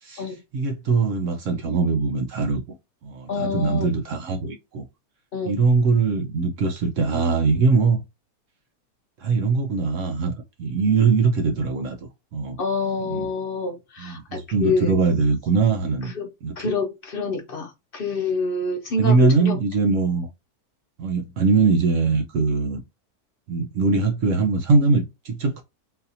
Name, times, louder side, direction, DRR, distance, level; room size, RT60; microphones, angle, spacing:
voice 1, 0.0-2.6 3.0-4.8 5.5-8.0 9.2-10.3 10.6-12.0 12.3-12.6 13.0-13.3 14.0-16.1 16.4-16.7 19.0-20.3 21.0-22.8 23.5-25.6, right 4 dB, 65° right, 0.9 m, -21 dB
voice 2, 3.3-3.9 5.3-5.6 12.6-15.0 16.0-16.3 16.6-19.6, left 4 dB, 65° left, 0.5 m, -26 dB
3.9 x 2.7 x 2.6 m
omnidirectional pair, 1.6 m